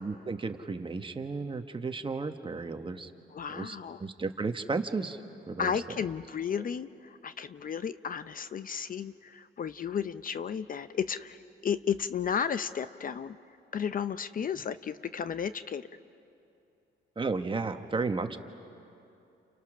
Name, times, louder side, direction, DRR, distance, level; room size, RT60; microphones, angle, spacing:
voice 1, 0.0-3.1 3.5-5.2 5.5-5.7 17.2-18.4, right 4 dB, 25° right, 7 dB, 1.3 m, -33 dB
voice 2, 3.3-4.0 5.6-11.4 11.6-13.4 13.7-15.9, left 7 dB, 45° left, 13 dB, 0.6 m, -33 dB
29.5 x 29.0 x 6.3 m, 2.7 s
cardioid pair, 90°, 20 cm